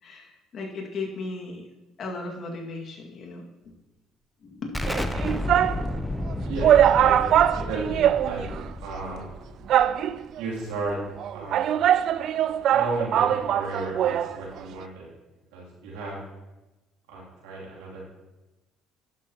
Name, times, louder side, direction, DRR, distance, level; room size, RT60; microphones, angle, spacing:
voice 1, 0.0-1.7 2.0-3.4 4.4-4.7, left 3 dB, 55° left, 0 dB, 1.9 m, -36 dB
Explosion, 4.7-10.2, left 1 dB, 10° left, 0.7 m, -32 dB
sound 1, 4.9-5.8 6.3-6.4 6.6-8.7 8.9-9.0 9.7-10.4 11.2-14.3 14.6-14.7, right 10 dB, 65° right, 0.3 m, -22 dB
voice 2, 6.5-8.4 8.8-9.3 10.3-11.0 11.3-12.0 12.7-15.1 15.5-16.2 17.1-18.0, right 2 dB, 85° right, -6 dB, 2.7 m, -34 dB
11.5 x 7.0 x 2.9 m, 1.1 s
supercardioid pair, 70°, 0 cm